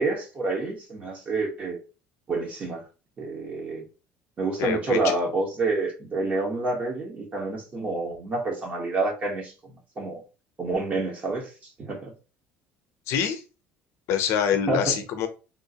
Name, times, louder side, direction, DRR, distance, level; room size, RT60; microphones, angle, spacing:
voice 1, 0.0-1.8 2.3-2.9 3.2-3.9 4.4-10.2 10.6-11.5 11.8-12.1 14.7-15.0, right 3 dB, 30° right, 0 dB, 1.1 m, -28 dB
voice 2, 4.6-5.1 13.1-13.4 14.1-15.3, left 8 dB, 65° left, 7 dB, 0.6 m, -25 dB
3.6 x 2.5 x 2.8 m, 0.32 s
cardioid pair, 135°, 5 cm